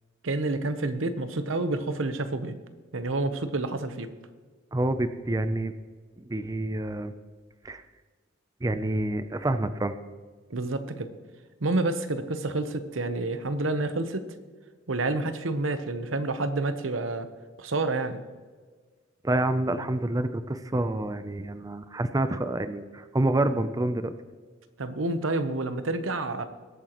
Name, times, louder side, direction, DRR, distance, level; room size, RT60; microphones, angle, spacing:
voice 1, 0.2-2.6 2.9-4.1 10.5-11.1 11.6-14.2 14.9-17.3 17.6-18.2 24.8-26.4, right 2 dB, 90° right, 10 dB, 0.9 m, -29 dB
voice 2, 4.7-5.7 6.2-7.1 7.6-7.8 8.6-9.9 19.2-24.1, right 1 dB, 20° right, 11 dB, 0.5 m, -28 dB
20.5 x 8.8 x 3.0 m, 1.5 s
head